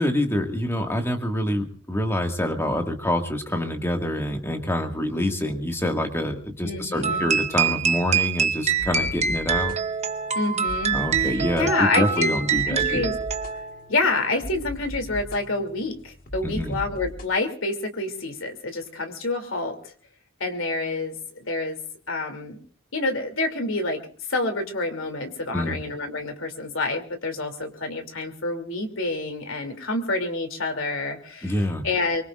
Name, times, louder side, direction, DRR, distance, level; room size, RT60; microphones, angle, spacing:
voice 1, 0.0-9.7 10.9-13.1 16.4-16.8 25.5-25.8 31.4-31.9, left 1 dB, 10° left, 3 dB, 2.0 m, -26 dB
voice 2, 6.6-7.3 10.3-11.0 11.6-12.3 12.6-13.2 13.9-19.9 20.4-21.2 21.4-21.8 22.1-22.6 22.9-24.0 24.3-32.2, left 2 dB, 70° left, 6 dB, 3.0 m, -27 dB
sound 1, 7.0-13.9, right 6 dB, 35° right, 1.0 m, -25 dB
sound 2, 8.8-17.3, equal, 45° left, 1.7 m, -39 dB
24.0 x 24.0 x 2.5 m, 0.43 s
head